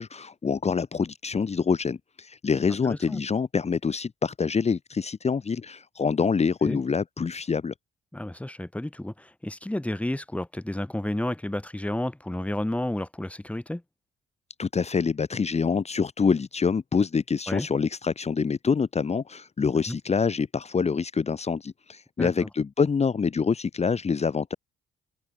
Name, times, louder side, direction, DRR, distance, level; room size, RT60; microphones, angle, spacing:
voice 1, 0.0-7.7 14.6-24.5, left 5 dB, 35° left, 1.4 m, -26 dB
voice 2, 2.8-3.2 6.6-6.8 8.1-13.8 17.5-17.7 19.9-20.0 22.2-22.3, left 1 dB, 5° left, 2.4 m, -31 dB
cardioid pair, 90°, 20 cm